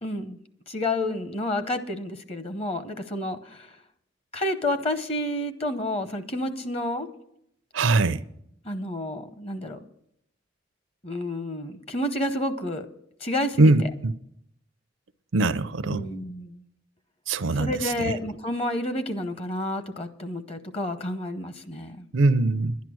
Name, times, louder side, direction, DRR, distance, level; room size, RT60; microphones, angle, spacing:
voice 1, 0.0-0.4 0.7-3.7 4.3-7.1 8.6-9.8 11.0-12.9 13.2-13.7 15.8-16.6 17.5-22.1, left 1 dB, 30° left, 0.8 m, -30 dB
voice 2, 7.7-8.2 13.6-14.1 15.3-16.1 17.3-18.1 22.1-22.8, right 2 dB, 90° right, 0.6 m, -22 dB
11.0 x 10.5 x 6.3 m
head